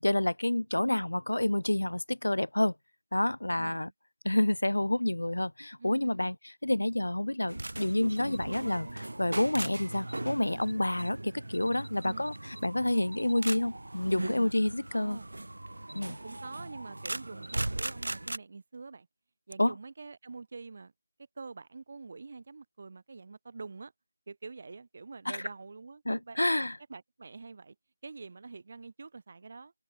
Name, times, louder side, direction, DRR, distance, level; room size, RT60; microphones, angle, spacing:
voice 1, 0.0-2.7 3.1-3.9 4.2-6.4 6.6-12.3 12.6-15.2 15.9-16.2 19.6-19.7 25.3-25.4 26.1-26.8, left 1 dB, 85° left, 0.3 m, -28 dB
voice 2, 3.5-3.9 5.8-6.3 11.9-12.3 14.9-15.3 16.0-19.1 19.5-20.9 21.4-23.9 24.3-26.4 26.9-27.8 28.0-29.7, right 4 dB, 45° right, 2.9 m, -46 dB
sound 1, 7.5-18.4, right 1 dB, 80° right, 0.7 m, -38 dB
figure-of-eight pair, 165°, 0 cm